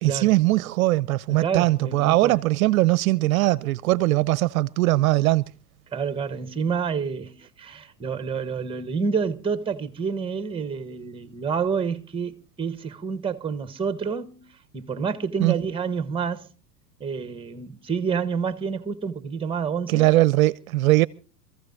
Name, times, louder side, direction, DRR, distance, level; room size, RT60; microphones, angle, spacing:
voice 1, 0.0-5.4 15.4-15.5 19.9-21.1, right 18 dB, 60° right, 0.6 m, -20 dB
voice 2, 1.3-2.4 5.9-16.5 17.0-20.1, right 6 dB, 10° right, 1.1 m, -28 dB
26.0 x 15.0 x 2.6 m
hypercardioid pair, 105°, 48 cm